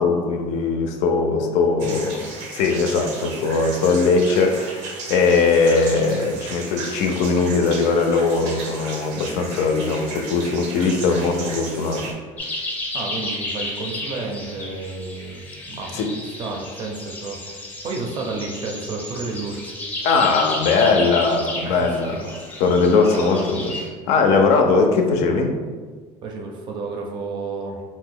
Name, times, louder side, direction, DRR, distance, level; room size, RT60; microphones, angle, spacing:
voice 1, 0.0-2.2 2.5-12.1 15.9-16.1 20.0-23.7 24.1-25.5, left 4 dB, 70° left, 4 dB, 0.4 m, -20 dB
voice 2, 1.8-2.2 12.9-19.8 21.6-22.3 22.9-23.5 26.2-27.8, right 3 dB, 40° right, 1 dB, 0.4 m, -31 dB
sound 1, 1.8-12.1, right 3 dB, 90° right, 0.6 m, -35 dB
sound 2, 12.4-23.9, left 1 dB, 15° left, 0.5 m, -32 dB
2.6 x 2.1 x 3.6 m, 1.5 s
cardioid pair, 155°, 12 cm